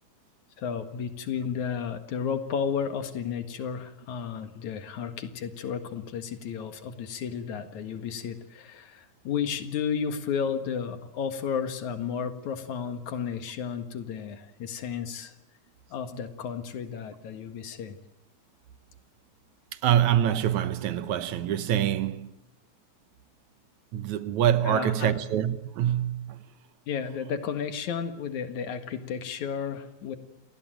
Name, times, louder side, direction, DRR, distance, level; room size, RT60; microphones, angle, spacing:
voice 1, 0.6-15.3 15.9-18.0 24.6-25.2 26.9-30.2, left 7 dB, 70° left, 3.1 m, -33 dB
voice 2, 19.8-22.3 23.9-26.4, right 10 dB, 70° right, 2.4 m, -25 dB
28.5 x 19.0 x 9.2 m
omnidirectional pair, 3.5 m